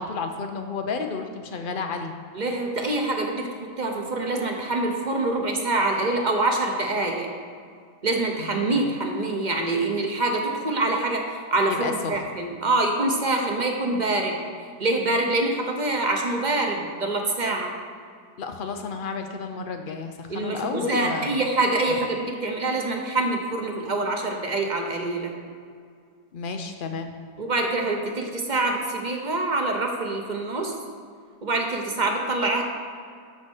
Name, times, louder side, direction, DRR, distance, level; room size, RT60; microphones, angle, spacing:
voice 1, 0.0-2.1 8.4-9.0 11.7-12.2 18.4-21.4 26.3-27.1, left 4 dB, 85° left, 5 dB, 0.4 m, -32 dB
voice 2, 2.3-3.5 3.8-7.3 8.0-11.2 11.5-14.4 14.8-17.7 20.3-25.3 27.4-30.7 31.4-32.6, right 2 dB, 35° right, 2 dB, 0.9 m, -25 dB
12.5 x 4.3 x 6.4 m, 2.2 s
omnidirectional pair, 1.8 m